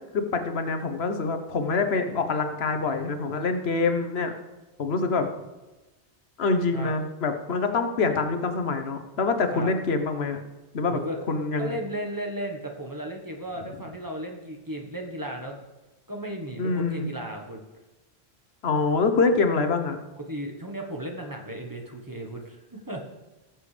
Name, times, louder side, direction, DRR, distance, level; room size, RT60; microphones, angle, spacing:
voice 1, 0.1-4.3 4.8-5.3 6.4-10.4 10.7-11.0 11.3-11.8 16.6-17.1 18.6-20.0, left 4 dB, 80° left, 7 dB, 1.2 m, -25 dB
voice 2, 10.9-11.2 11.6-15.6 16.1-17.6 20.2-23.0, right 1 dB, 20° right, 1 dB, 1.2 m, -35 dB
18.5 x 7.4 x 3.3 m, 1.1 s
omnidirectional pair, 1.0 m